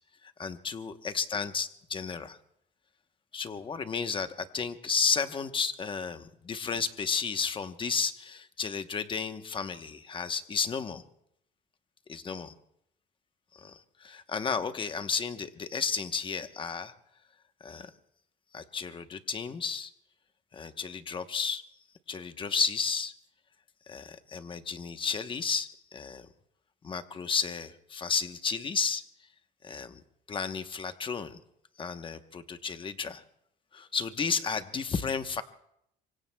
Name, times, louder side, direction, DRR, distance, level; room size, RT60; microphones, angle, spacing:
voice 1, 0.4-2.4 3.3-11.0 12.1-12.5 13.5-16.9 17.6-17.9 18.5-19.9 20.5-21.6 22.1-23.1 23.9-26.3 26.8-29.0 29.6-30.0 30.3-31.4 31.8-33.2 33.7-35.4, left 5 dB, 30° left, 9 dB, 1.0 m, -32 dB
26.0 x 24.5 x 2.3 m, 0.75 s
cardioid pair, 125°, 18 cm